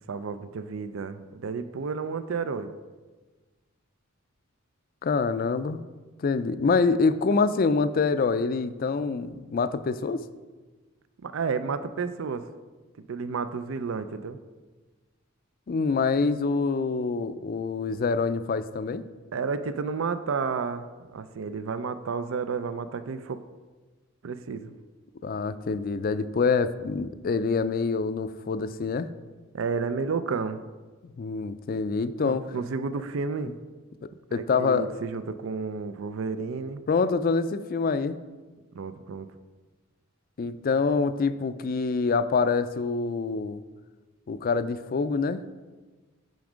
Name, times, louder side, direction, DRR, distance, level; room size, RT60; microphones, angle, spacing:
voice 1, 0.1-2.7 11.2-12.5 13.0-14.4 19.3-23.4 24.2-24.7 29.5-30.6 32.2-33.6 34.3-36.8 38.7-39.3, right 5 dB, 75° right, 12 dB, 0.5 m, -31 dB
voice 2, 5.0-5.8 6.2-10.2 15.7-19.1 25.2-29.1 31.2-32.4 34.3-34.9 36.9-38.2 40.4-43.6 44.3-45.4, left 4 dB, 45° left, 12 dB, 0.4 m, -26 dB
9.3 x 5.2 x 5.0 m, 1.3 s
head